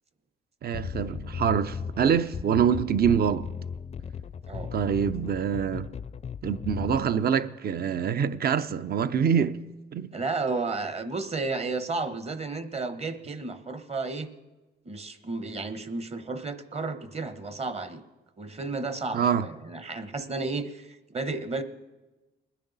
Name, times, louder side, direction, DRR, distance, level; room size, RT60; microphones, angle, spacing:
voice 1, 0.6-3.5 4.7-5.9 6.4-9.6 9.9-10.1 19.1-19.5, right 7 dB, 50° right, 0.7 m, -25 dB
sound 1, 0.7-7.1, left 6 dB, 30° left, 0.4 m, -37 dB
voice 2, 10.1-14.3 14.8-18.0 18.4-21.6, right 3 dB, 30° right, 1.1 m, -32 dB
21.5 x 10.0 x 4.1 m
cardioid pair, 90°, 20 cm